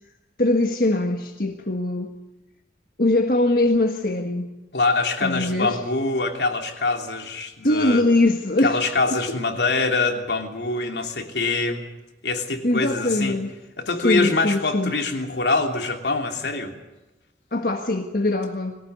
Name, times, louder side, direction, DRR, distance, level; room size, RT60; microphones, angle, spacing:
voice 1, 0.4-2.2 3.0-4.5 5.2-5.8 7.6-8.8 12.6-13.5 14.0-15.0 17.5-18.8, left 2 dB, 55° left, 1.7 m, -22 dB
voice 2, 4.7-8.0 8.6-11.8 12.2-13.4 13.8-16.7, left 3 dB, 80° left, 3.1 m, -24 dB
22.5 x 18.5 x 9.4 m
head